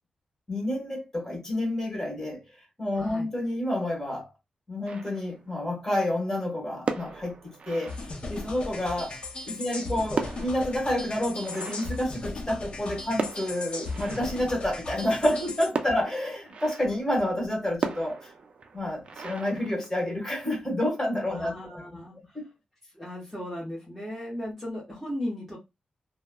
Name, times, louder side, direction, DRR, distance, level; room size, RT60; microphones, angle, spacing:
voice 1, 0.5-2.4 2.8-4.3 4.7-9.2 9.4-18.3 18.7-21.8 22.3-22.4, left 1 dB, 20° left, 1.4 m, -29 dB
voice 2, 2.9-3.3 21.3-22.4 22.9-25.6, left 1 dB, ahead, 0.9 m, -36 dB
sound 1, 4.9-5.6 6.7-8.6 9.6-12.8 13.2-14.7 15.7-17.1 17.8-20.3, right 4 dB, 50° right, 0.4 m, -37 dB
sound 2, 7.9-15.7, left 3 dB, 45° left, 0.7 m, -37 dB
3.0 x 2.0 x 2.2 m
wide cardioid pair, 95°, 2 cm